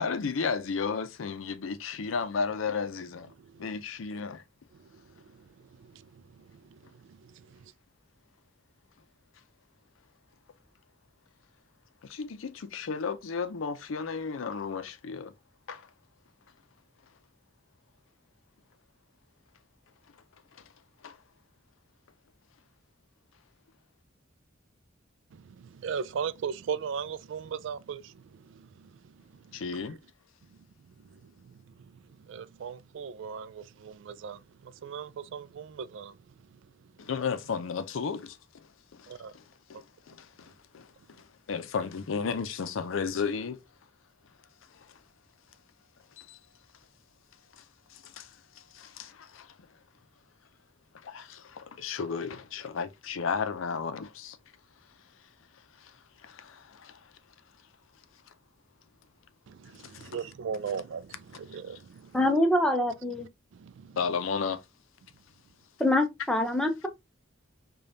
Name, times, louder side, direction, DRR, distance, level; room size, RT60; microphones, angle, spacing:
voice 1, 0.0-3.3 3.6-4.4 12.0-15.3 15.7-15.9 21.0-21.2 29.5-30.0 37.0-39.4 39.7-43.6 44.7-44.9 46.2-46.4 47.6-47.7 47.9-49.5 50.9-54.4 55.8-55.9 56.2-57.1 59.8-60.1 64.0-64.6, left 5 dB, 85° left, 0.5 m, -34 dB
voice 2, 4.8-5.4 5.8-6.8 7.1-7.6 25.3-28.9 29.3-29.5 31.1-31.5 31.9-36.2 39.1-39.3 59.5-62.2 63.5-64.0, right 7 dB, 65° right, 0.3 m, -39 dB
voice 3, 62.1-63.3 65.8-66.9, left 1 dB, 5° left, 0.6 m, -25 dB
5.0 x 2.3 x 2.6 m
head